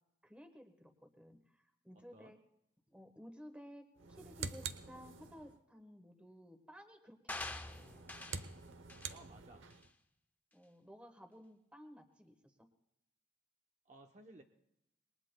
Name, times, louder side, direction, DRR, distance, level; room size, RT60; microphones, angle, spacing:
voice 1, 0.2-2.4 2.9-8.0 10.5-12.5, equal, 5° right, 6 dB, 1.3 m, -56 dB
sound 1, 3.9-5.6 7.6-9.9, right 5 dB, 85° right, 0.9 m, -47 dB
sound 2, 7.3-8.5 8.9-9.2 9.7-9.8, left 2 dB, 10° left, 0.6 m, -45 dB
voice 2, 9.1-9.7 13.9-14.4, right 2 dB, 35° right, 3 dB, 0.8 m, -57 dB
27.0 x 21.0 x 2.3 m, 0.81 s
head